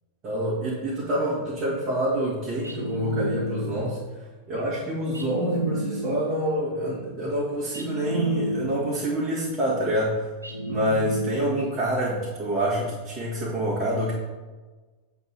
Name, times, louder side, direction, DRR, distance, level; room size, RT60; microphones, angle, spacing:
voice 1, 0.2-4.0 4.5-10.3 10.7-14.1, right 1 dB, 30° right, -8 dB, 2.1 m, -27 dB
sound 1, 2.6-4.0 5.1-6.5 7.7-9.1 10.4-11.8, equal, 85° right, 1.0 m, -31 dB
7.7 x 3.7 x 4.3 m, 1.3 s
figure-of-eight pair, 90°, 0 cm